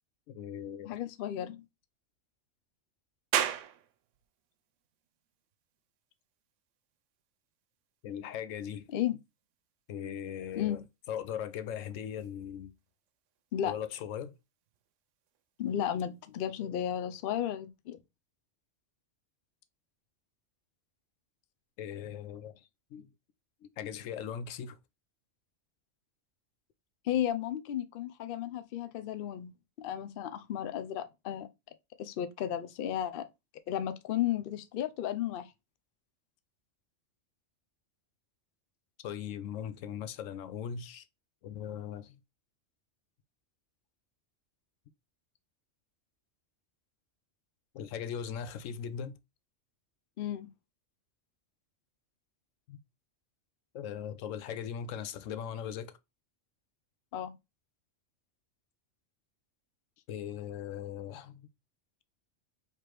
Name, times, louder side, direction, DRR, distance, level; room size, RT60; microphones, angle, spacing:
voice 1, 0.3-1.0 8.0-8.9 9.9-12.7 13.7-14.4 21.8-23.1 23.6-24.8 39.0-41.0 41.4-42.2 47.7-49.2 52.7-52.8 53.7-55.9 60.1-61.5, left 8 dB, 85° left, 1.0 m, -39 dB
voice 2, 0.8-1.6 8.9-9.2 10.6-10.8 13.5-13.7 15.6-18.0 27.0-29.5 29.8-31.5 32.0-33.3 33.7-35.5 50.2-50.5 57.1-57.3, left 11 dB, 60° left, 0.6 m, -33 dB
sound 1, 3.3-16.4, right 10 dB, 75° right, 0.9 m, -43 dB
4.8 x 3.4 x 3.0 m
omnidirectional pair, 1.3 m